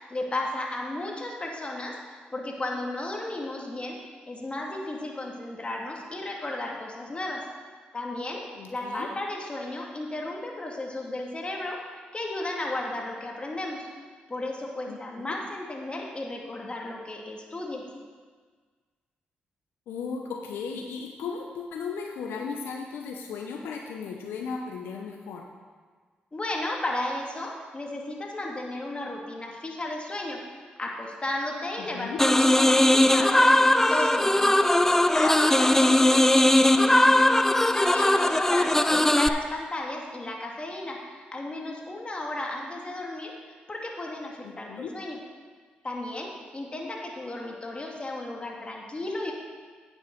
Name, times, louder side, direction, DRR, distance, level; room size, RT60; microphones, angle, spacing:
voice 1, 0.1-4.0 4.3-7.4 7.9-8.4 8.7-11.8 12.1-13.9 14.3-17.8 26.3-30.4 30.8-33.6 33.9-34.7 35.1-37.2 37.7-43.3 43.7-45.2 45.8-49.3, left 2 dB, 30° left, -1 dB, 2.1 m, -34 dB
voice 2, 8.6-9.1 14.9-15.3 19.9-25.4 31.8-32.2 38.9-39.0 44.4-44.9, left 5 dB, 80° left, 1 dB, 0.8 m, -36 dB
sound 1, 32.2-39.3, left 1 dB, 10° left, 0.5 m, -20 dB
9.3 x 7.3 x 5.2 m, 1.5 s
supercardioid pair, 50°, 4 cm